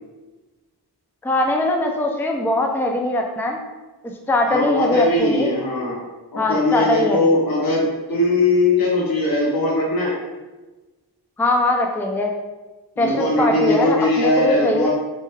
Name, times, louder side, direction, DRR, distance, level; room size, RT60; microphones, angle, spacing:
voice 1, 1.2-3.6 4.3-5.5 6.4-7.3 11.4-12.3 13.0-14.9, left 2 dB, 5° left, 2 dB, 0.3 m, -21 dB
voice 2, 4.5-6.0 6.3-10.1 13.0-14.9, left 2 dB, 55° left, -5 dB, 0.9 m, -20 dB
4.6 x 2.9 x 2.3 m, 1.2 s
wide cardioid pair, 75°, 41 cm